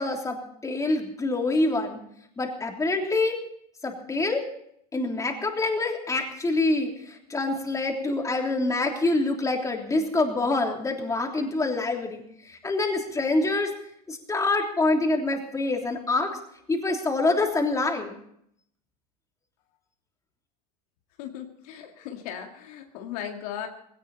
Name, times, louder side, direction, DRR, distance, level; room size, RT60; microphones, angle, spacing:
voice 1, 0.0-2.0 2.4-3.4 3.8-4.4 4.9-6.9 7.3-12.2 12.5-13.7 14.1-16.3 16.7-18.1, left 2 dB, 15° left, 2 dB, 3.4 m, -26 dB
voice 2, 21.2-23.7, left 9 dB, 70° left, 3 dB, 2.2 m, -37 dB
18.5 x 17.5 x 4.2 m, 0.70 s
hypercardioid pair, 100°, 20 cm